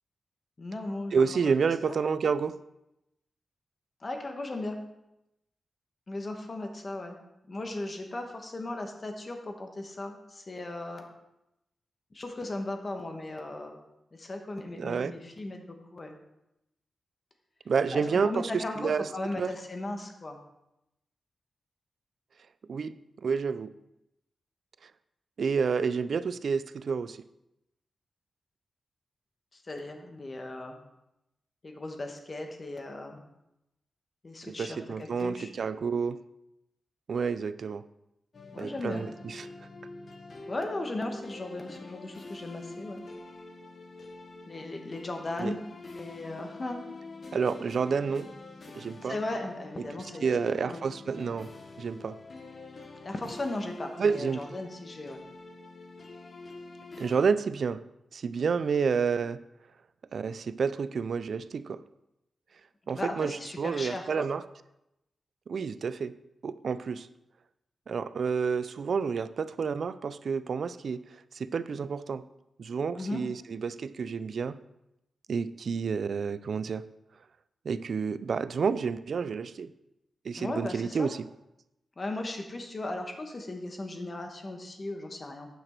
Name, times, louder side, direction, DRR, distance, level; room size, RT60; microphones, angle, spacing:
voice 1, 0.6-1.6 1.9-2.0 4.0-4.8 6.1-11.1 12.1-13.8 14.1-16.2 17.9-20.4 29.5-30.8 31.6-33.2 34.2-35.5 38.5-39.1 40.5-43.0 44.5-45.6 45.9-46.8 49.0-50.8 53.0-55.2 62.9-64.3 73.0-73.2 80.4-81.1 82.0-85.5, left 2 dB, 35° left, 4 dB, 1.2 m, -37 dB
voice 2, 1.1-2.6 14.8-15.1 17.7-19.1 19.4-19.5 22.7-22.9 23.2-23.7 25.4-27.2 34.4-36.2 37.1-37.8 38.6-39.5 45.4-45.5 47.3-48.3 48.7-49.2 50.2-51.5 51.8-52.2 54.0-54.4 57.0-57.8 58.1-59.4 60.1-61.8 62.9-64.4 65.5-66.1 66.4-67.1 67.9-72.2 72.6-74.6 75.3-76.8 77.7-79.7 80.2-81.2, right 5 dB, 60° right, 15 dB, 0.3 m, -29 dB
sound 1, 38.3-57.3, left 3 dB, 50° left, 1.0 m, -46 dB
9.3 x 6.0 x 4.4 m, 0.88 s
wide cardioid pair, 140°, 0 cm